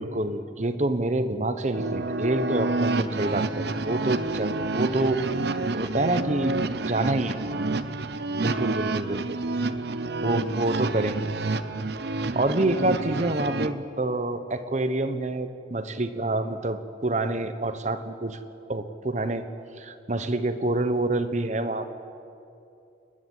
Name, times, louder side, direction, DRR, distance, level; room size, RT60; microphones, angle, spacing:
voice 1, 0.0-5.2 5.7-7.4 8.4-9.2 10.2-11.2 12.3-18.4 18.7-19.5 19.8-21.9, right 2 dB, 40° right, 10 dB, 1.1 m, -27 dB
sound 1, 1.7-13.7, right 3 dB, 60° right, 0.7 m, -29 dB
30.0 x 11.0 x 9.5 m, 2.7 s
head